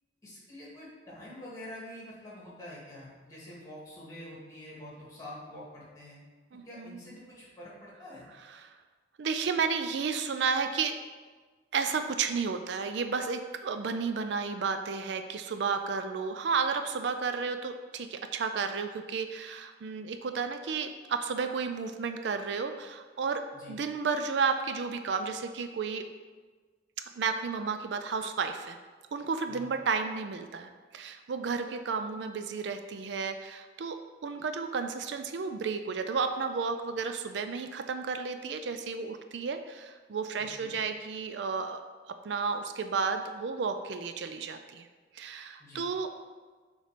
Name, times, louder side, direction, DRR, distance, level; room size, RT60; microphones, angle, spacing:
voice 1, 0.2-6.2 6.6-8.3 23.5-23.7 29.5-29.7 40.4-40.7 45.6-45.9, left 1 dB, 20° left, -6 dB, 1.9 m, -46 dB
voice 2, 6.5-7.0 8.5-8.7 9.2-11.0 11.7-23.4 23.7-26.1 27.2-28.8 29.1-34.0 34.2-41.8 42.2-44.9 45.1-46.1, right 5 dB, 70° right, 8 dB, 0.4 m, -32 dB
6.6 x 3.1 x 5.0 m, 1.4 s
head